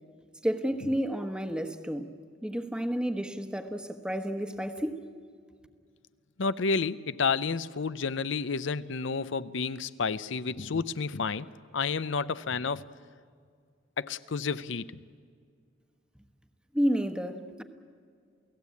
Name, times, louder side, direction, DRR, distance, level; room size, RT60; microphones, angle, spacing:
voice 1, 0.4-2.1 2.4-5.0 16.7-17.6, equal, 5° right, 1.2 m, -30 dB
voice 2, 6.4-11.5 11.7-12.9 14.0-15.0, left 5 dB, 70° left, 0.6 m, -30 dB
29.0 x 17.0 x 8.5 m
head